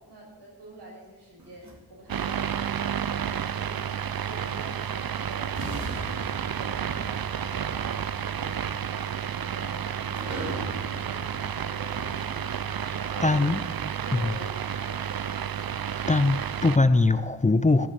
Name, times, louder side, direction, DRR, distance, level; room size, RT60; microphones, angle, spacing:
voice 1, 0.0-3.2 3.5-3.9 4.2-12.3 12.9-13.4 14.0-15.4, right 1 dB, 85° right, 6.0 m, -46 dB
sound 1, 1.4-3.8 5.0-5.1 5.5-13.0, right 1 dB, 45° right, 2.9 m, -41 dB
sound 2, 2.1-16.8, right 8 dB, 60° right, 0.7 m, -31 dB
voice 2, 12.9-13.6 14.1-14.4 16.1-17.9, left 3 dB, 20° left, 0.6 m, -22 dB
15.0 x 7.3 x 8.2 m
cardioid pair, 55°, 40 cm